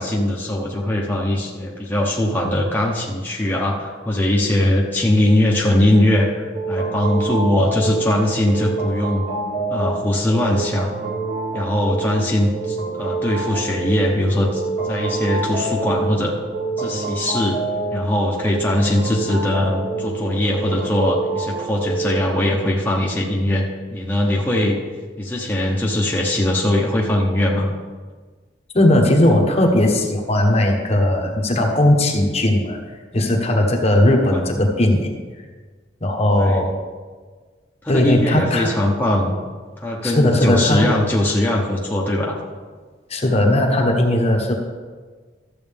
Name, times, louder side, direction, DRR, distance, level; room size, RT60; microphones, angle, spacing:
voice 1, 0.0-9.2 9.7-10.9 11.5-14.6 14.9-16.3 16.8-17.6 17.9-24.8 25.2-27.7 36.4-36.7 37.8-39.3 39.8-42.4, left 1 dB, 10° left, -4 dB, 1.0 m, -20 dB
sound 1, 6.5-22.4, right 3 dB, 55° right, 1.7 m, -27 dB
voice 2, 28.7-32.8 33.1-35.1 36.0-36.7 37.9-38.7 40.0-40.9 43.1-44.5, left 1 dB, 35° left, 2 dB, 1.1 m, -17 dB
13.0 x 7.7 x 3.5 m, 1.4 s
head